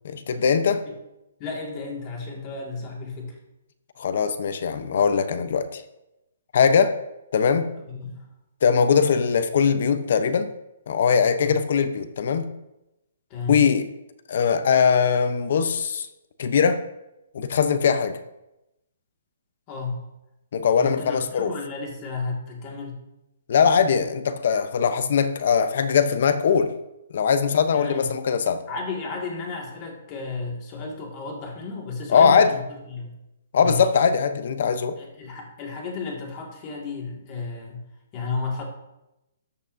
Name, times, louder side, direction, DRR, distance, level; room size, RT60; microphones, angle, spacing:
voice 1, 0.0-0.8 4.0-5.8 6.5-6.9 7.3-7.7 8.6-10.5 10.9-12.5 13.5-13.8 14.3-16.1 16.4-16.8 17.3-18.2 20.5-21.5 23.5-26.7 27.1-28.6 32.1-32.5 33.5-35.0, left 6 dB, 55° left, 11 dB, 0.8 m, -21 dB
voice 2, 1.4-3.4 7.9-8.3 11.4-11.5 13.3-13.6 19.7-20.0 20.8-23.0 27.7-28.1 28.7-33.1 33.6-33.8 35.0-37.8 38.1-38.6, left 4 dB, 25° left, 0 dB, 2.0 m, -33 dB
13.5 x 8.3 x 2.7 m, 0.93 s
hypercardioid pair, 165°, 0 cm